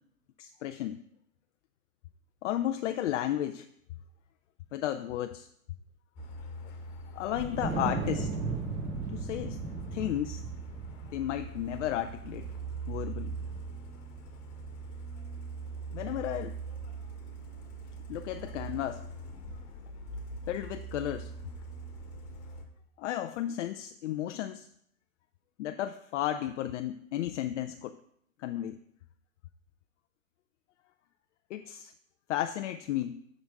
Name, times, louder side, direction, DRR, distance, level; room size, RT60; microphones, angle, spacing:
voice 1, 0.4-1.0 2.4-3.7 4.7-5.5 7.1-8.3 9.1-9.6 9.9-10.4 11.1-12.4 12.9-13.3 15.9-16.6 18.1-19.0 20.5-21.3 23.0-24.7 25.6-28.0 28.4-28.8 31.5-31.9 32.3-33.2, left 12 dB, 60° left, 8 dB, 0.5 m, -33 dB
Truck, 6.2-22.6, right 4 dB, 35° left, 1.2 m, -42 dB
Wind, 7.3-13.8, right 4 dB, 45° right, 3.0 m, -37 dB
7.3 x 3.9 x 5.2 m, 0.68 s
hypercardioid pair, 120°, 43 cm